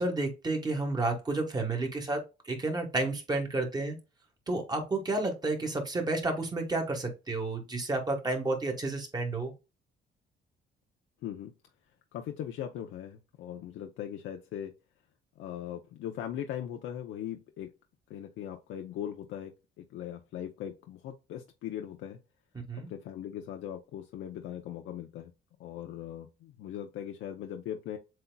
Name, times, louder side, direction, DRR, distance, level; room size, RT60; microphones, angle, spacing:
voice 1, 0.0-3.9 4.5-9.5 22.7-22.9, right 2 dB, 20° right, 1.2 m, -31 dB
voice 2, 11.2-11.5 12.1-14.7 15.4-17.7 18.1-22.2 22.9-25.3 25.6-28.0, left 10 dB, 75° left, 0.6 m, -39 dB
7.6 x 2.8 x 2.2 m
cardioid pair, 125°, 20 cm